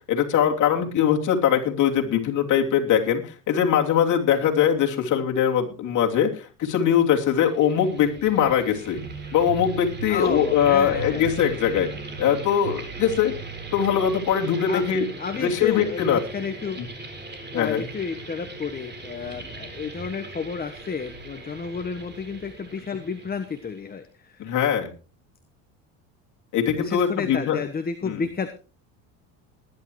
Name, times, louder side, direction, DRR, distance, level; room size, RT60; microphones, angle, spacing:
voice 1, 0.1-9.0 9.3-11.9 12.2-13.3 13.7-15.1 15.3-16.2 17.5-17.8 24.4-24.9 26.5-27.6 28.1-28.2, left 8 dB, 50° left, 1 dB, 3.1 m, -22 dB
sound 1, 7.3-23.9, right 2 dB, 25° right, 3.9 m, -40 dB
sound 2, 9.0-14.3, right 7 dB, 90° right, 5.8 m, -38 dB
voice 2, 10.1-11.3 14.7-14.9 15.2-16.8 17.5-24.5 26.8-28.5, left 5 dB, 25° left, 8 dB, 1.2 m, -31 dB
20.0 x 11.0 x 3.1 m, 0.34 s
supercardioid pair, 90°, 38 cm